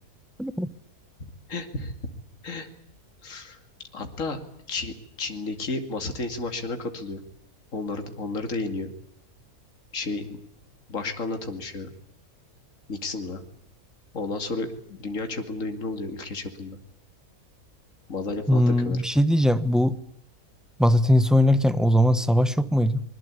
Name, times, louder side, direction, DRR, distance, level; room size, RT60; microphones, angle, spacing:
voice 1, 1.5-1.9 2.4-2.7 3.2-3.6 3.9-4.4 4.7-7.2 7.7-8.9 9.9-10.4 10.9-11.9 12.9-13.4 14.1-16.8 18.1-19.0, left 3 dB, 60° left, 6 dB, 2.8 m, -32 dB
voice 2, 18.5-20.0 20.8-23.0, equal, ahead, 12 dB, 1.2 m, -20 dB
24.5 x 22.0 x 8.4 m, 0.71 s
omnidirectional pair, 1.6 m